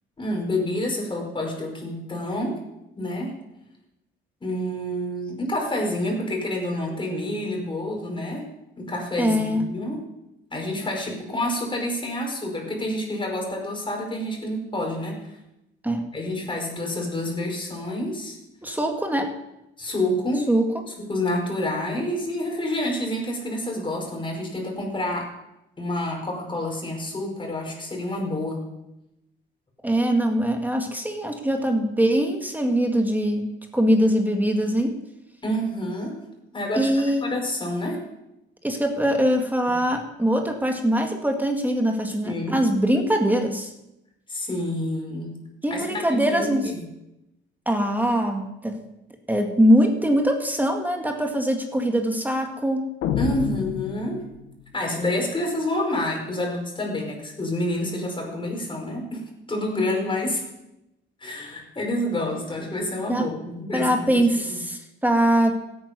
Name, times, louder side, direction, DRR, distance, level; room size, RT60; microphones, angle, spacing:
voice 1, 0.2-2.6 3.0-3.3 4.4-8.5 8.8-10.1 10.5-15.2 16.1-18.4 19.8-20.5 21.0-25.3 25.8-28.6 35.4-36.2 36.5-38.0 42.2-42.6 44.3-45.4 45.7-46.8 53.2-54.2 54.7-59.2 59.5-60.4 61.2-64.2 64.5-64.6, left 1 dB, 25° left, 0 dB, 5.3 m, -28 dB
voice 2, 9.2-9.7 15.8-16.0 18.6-19.3 20.5-20.7 29.8-35.0 36.8-37.3 38.6-43.7 45.6-46.6 47.7-48.8 49.3-52.9 63.1-63.3 63.7-65.6, equal, 10° right, 3 dB, 1.9 m, -22 dB
sound 1, 53.0-54.6, left 8 dB, 90° left, 1.2 m, -28 dB
16.5 x 9.4 x 5.3 m, 0.88 s
cardioid pair, 90°, 20 cm